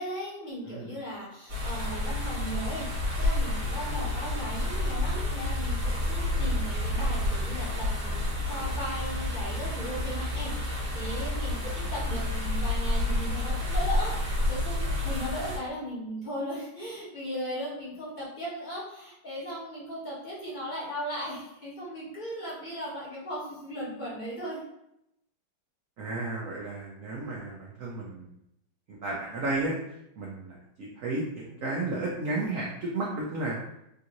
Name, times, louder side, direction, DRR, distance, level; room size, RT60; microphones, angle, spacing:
voice 1, 0.0-14.1 14.5-24.6, equal, 30° left, -8 dB, 1.2 m, -37 dB
voice 2, 0.6-1.0 26.0-28.3 28.9-29.8 30.2-33.6, right 2 dB, 75° right, -4 dB, 0.7 m, -33 dB
sound 1, 1.5-15.6, left 1 dB, 40° right, 1.7 m, -29 dB
3.6 x 2.6 x 2.9 m, 0.81 s
omnidirectional pair, 2.1 m